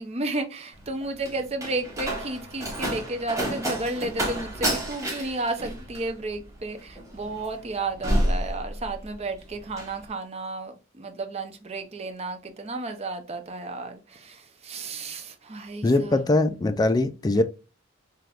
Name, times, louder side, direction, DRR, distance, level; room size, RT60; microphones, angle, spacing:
voice 1, 0.0-16.2, right 2 dB, 30° right, 0.5 m, -32 dB
Slam, 0.7-9.2 9.5-10.0, right 1 dB, 15° right, 1.1 m, -30 dB
voice 2, 15.8-17.4, left 2 dB, 20° left, 0.3 m, -22 dB
3.4 x 2.9 x 2.3 m
head